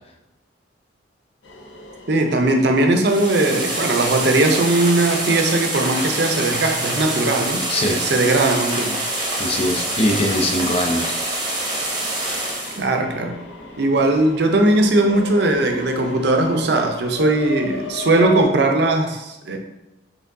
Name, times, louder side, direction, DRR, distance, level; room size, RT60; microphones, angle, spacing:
sound 1, 1.4-18.4, left 1 dB, 70° left, 0.7 m, -37 dB
voice 1, 2.1-9.0 12.8-13.3 13.8-19.6, right 2 dB, 60° right, 4 dB, 0.5 m, -19 dB
sound 2, 2.9-12.8, right 1 dB, 20° right, 0.7 m, -25 dB
voice 2, 7.7-8.0 9.4-11.2, left 1 dB, 30° left, 3 dB, 0.4 m, -21 dB
4.4 x 3.4 x 2.6 m, 0.99 s
head